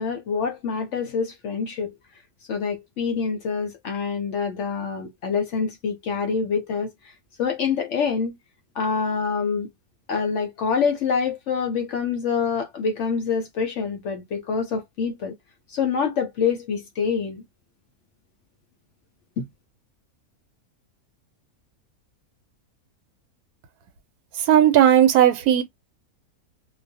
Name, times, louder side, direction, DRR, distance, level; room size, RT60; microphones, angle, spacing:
voice 1, 0.0-1.9 2.5-6.9 7.4-8.4 8.8-9.7 10.1-15.3 15.7-17.4 19.4-19.5, left 6 dB, 65° left, 0.8 m, -26 dB
voice 2, 24.4-25.6, right 10 dB, 80° right, 1.1 m, -16 dB
2.3 x 2.2 x 2.6 m
omnidirectional pair, 1.6 m